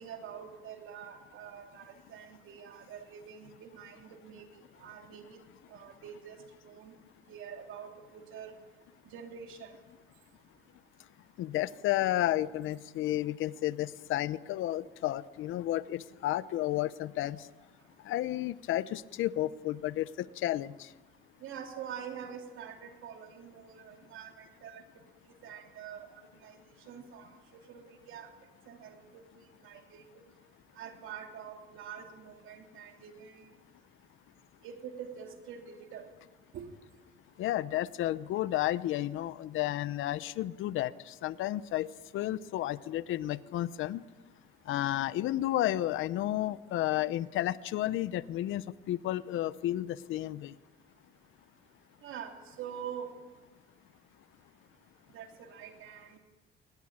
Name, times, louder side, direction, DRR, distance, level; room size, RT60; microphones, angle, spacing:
voice 1, 0.0-4.5 4.8-5.4 5.7-6.4 6.6-6.9 7.3-8.6 9.0-9.7 21.4-24.8 25.4-26.6 26.9-28.3 28.7-30.2 30.8-33.5 34.6-36.1 36.5-36.7 52.0-53.1 55.1-56.2, right 8 dB, 85° right, 5 dB, 3.2 m, -45 dB
voice 2, 11.4-17.4 18.0-20.9 37.4-41.9 42.1-44.0 44.7-50.5, left 14 dB, 85° left, 17 dB, 0.8 m, -32 dB
22.0 x 19.0 x 8.9 m, 1.2 s
cardioid pair, 90°, 20 cm